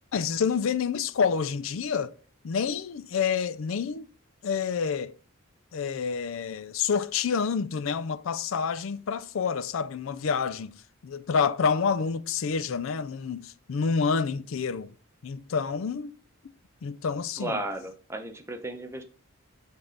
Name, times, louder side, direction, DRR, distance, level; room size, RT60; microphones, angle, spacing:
voice 1, 0.1-2.1 2.4-4.1 4.4-5.1 5.7-10.7 11.0-14.9 15.2-16.1 16.8-17.5, left 6 dB, 65° left, 0.4 m, -28 dB
voice 2, 17.4-19.0, right 1 dB, 10° right, 0.8 m, -34 dB
7.9 x 3.7 x 5.2 m
head